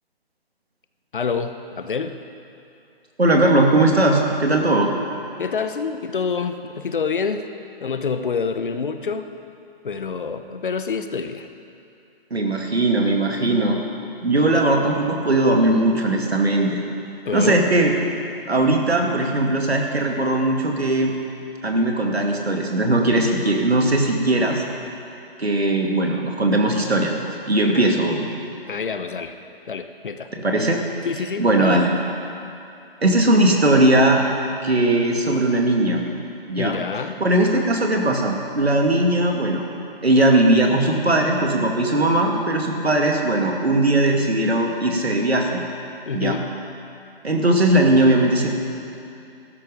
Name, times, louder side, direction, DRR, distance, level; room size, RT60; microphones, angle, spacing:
voice 1, 1.1-2.2 5.4-7.5 7.8-9.3 9.8-11.5 17.2-17.6 27.6-27.8 28.7-29.3 29.7-30.3 31.0-31.9 36.6-37.2 46.1-46.5, left 5 dB, 55° left, 9 dB, 1.0 m, -27 dB
voice 2, 3.2-4.9 12.3-13.8 14.2-16.8 17.3-17.9 18.5-21.1 21.6-24.6 25.4-27.1 27.5-28.3 30.4-30.8 31.4-31.9 33.0-34.2 34.6-36.0 36.5-36.8 37.2-39.6 40.0-45.6 46.1-46.4 47.2-48.5, right 1 dB, 85° right, 1 dB, 2.4 m, -19 dB
15.5 x 12.5 x 5.1 m, 2.7 s
figure-of-eight pair, 150°, 31 cm